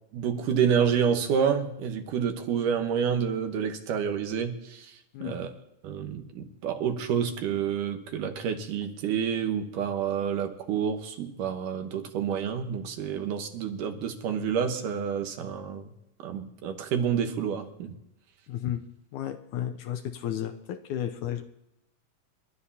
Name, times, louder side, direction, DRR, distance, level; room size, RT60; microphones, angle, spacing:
voice 1, 0.1-4.9 5.2-5.5 5.8-15.8 16.2-18.0, right 7 dB, 75° right, 5 dB, 2.7 m, -28 dB
voice 2, 18.5-18.8 19.1-21.4, left 11 dB, 75° left, 8 dB, 1.9 m, -33 dB
28.5 x 12.5 x 2.8 m, 0.86 s
omnidirectional pair, 3.9 m